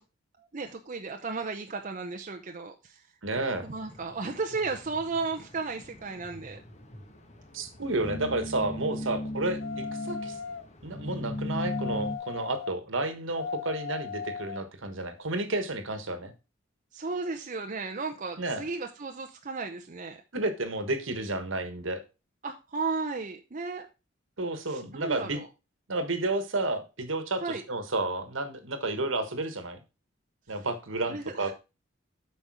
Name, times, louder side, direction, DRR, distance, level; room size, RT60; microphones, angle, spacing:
voice 1, 0.4-3.0 3.6-6.6 9.0-9.1 16.9-20.2 22.4-23.9 24.7-25.5 27.4-27.6 31.1-31.5, right 4 dB, 40° right, 4 dB, 0.7 m, -34 dB
voice 2, 3.2-3.7 7.5-10.4 10.8-16.3 18.4-18.6 20.3-22.0 24.4-25.4 25.9-29.8 30.5-31.5, right 2 dB, 70° right, 9 dB, 1.5 m, -31 dB
sound 1, 3.5-12.2, left 1 dB, 35° left, 1.4 m, -38 dB
sound 2, 9.6-10.6 11.6-12.7 13.4-14.6 15.2-15.3, left 6 dB, 85° left, 0.8 m, -37 dB
8.2 x 5.3 x 4.9 m, 0.29 s
head